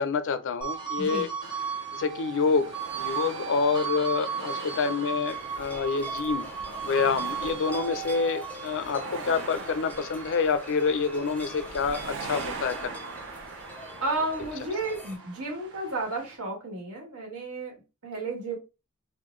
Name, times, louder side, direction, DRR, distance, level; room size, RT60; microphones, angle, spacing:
voice 1, 0.0-1.3 1.9-6.5 6.8-12.9, left 5 dB, 60° left, 0.4 m, -27 dB
sound 1, 0.6-13.2 13.6-15.3, right 6 dB, 20° right, 0.8 m, -36 dB
sound 2, 1.4-16.4, right 4 dB, 60° right, 0.6 m, -42 dB
sound 3, 5.3-15.2, left 1 dB, 5° left, 0.6 m, -44 dB
voice 2, 14.0-17.8 18.0-18.6, right 2 dB, 85° right, 1.4 m, -32 dB
3.6 x 2.2 x 3.1 m
head